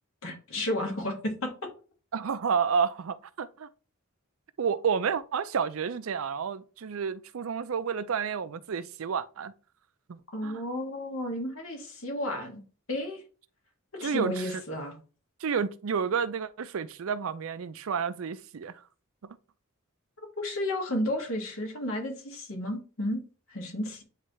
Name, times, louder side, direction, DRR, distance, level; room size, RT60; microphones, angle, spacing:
voice 1, 0.2-1.5 10.3-12.6 12.9-13.2 13.9-15.0 20.4-23.2 23.5-24.0, left 1 dB, 80° left, 2.1 m, -32 dB
voice 2, 2.1-3.7 4.6-9.5 10.1-10.6 14.0-14.5 15.4-18.8 19.2-19.4, right 6 dB, 80° right, 0.5 m, -30 dB
9.2 x 3.3 x 3.2 m
head